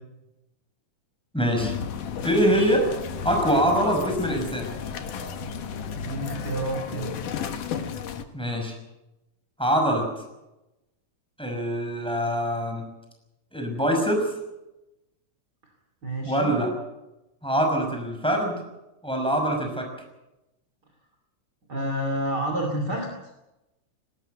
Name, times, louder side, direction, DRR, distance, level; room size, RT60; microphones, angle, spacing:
voice 1, 1.3-1.7 2.2-2.9 3.2-4.7 8.3-8.7 9.6-10.1 11.4-12.9 13.5-14.3 16.3-16.7 17.4-18.6 19.0-19.9, equal, ahead, 2 dB, 5.5 m, -24 dB
sound 1, 1.6-8.2, left 6 dB, 90° left, 3.1 m, -33 dB
voice 2, 5.9-7.1 16.0-16.6 21.7-23.1, right 1 dB, 35° right, 3 dB, 2.9 m, -29 dB
19.5 x 18.5 x 7.8 m, 0.96 s
omnidirectional pair, 3.5 m